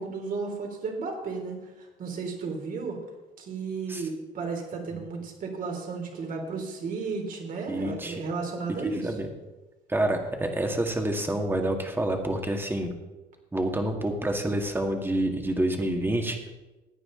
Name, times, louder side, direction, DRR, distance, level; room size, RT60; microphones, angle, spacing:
voice 1, 0.0-3.0 3.4-9.2, right 4 dB, 55° right, 2 dB, 3.3 m, -34 dB
voice 2, 7.7-8.2 8.8-9.3 9.9-12.9 13.5-16.4, right 1 dB, 15° right, 3 dB, 1.9 m, -28 dB
15.5 x 9.6 x 3.9 m, 1.1 s
cardioid pair, 110°, 17 cm